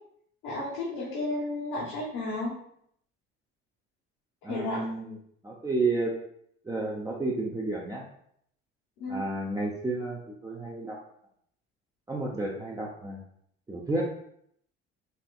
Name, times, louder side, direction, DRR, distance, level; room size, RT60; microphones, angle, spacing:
voice 1, 0.4-2.5 4.4-4.8 9.0-9.2, left 2 dB, 75° left, -7 dB, 1.1 m, -32 dB
voice 2, 4.4-5.2 5.4-6.1 6.6-8.0 9.1-11.0 12.1-13.2 13.7-14.1, right 2 dB, 10° right, -3 dB, 0.5 m, -31 dB
4.3 x 2.4 x 2.3 m, 0.69 s
supercardioid pair, 70°, 29 cm